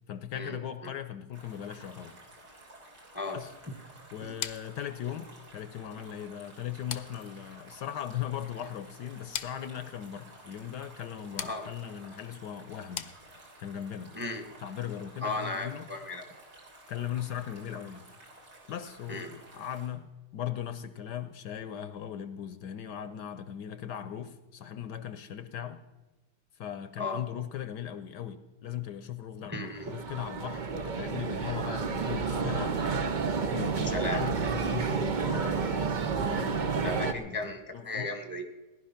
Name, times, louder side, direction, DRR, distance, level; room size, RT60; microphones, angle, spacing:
voice 1, 0.0-2.2 3.3-3.5 4.1-13.1 13.6-14.1 14.6-15.9 16.9-18.1 18.7-25.8 26.5-32.8 33.4-35.8 36.2-38.2, left 10 dB, 70° left, 11 dB, 1.2 m, -38 dB
sound 1, 1.3-19.9, right 1 dB, 65° right, 3.5 m, -53 dB
sound 2, 4.4-13.7, left 11 dB, 90° left, 1.5 m, -44 dB
voice 2, 11.4-11.7 14.1-14.4 15.2-16.2 19.1-19.3 27.0-27.2 29.5-29.9 33.9-34.2 36.8-38.5, left 2 dB, 5° right, 5 dB, 1.0 m, -35 dB
sound 3, 29.7-37.1, right 5 dB, 85° right, 0.4 m, -30 dB
18.0 x 11.0 x 5.8 m, 1.1 s
omnidirectional pair, 2.0 m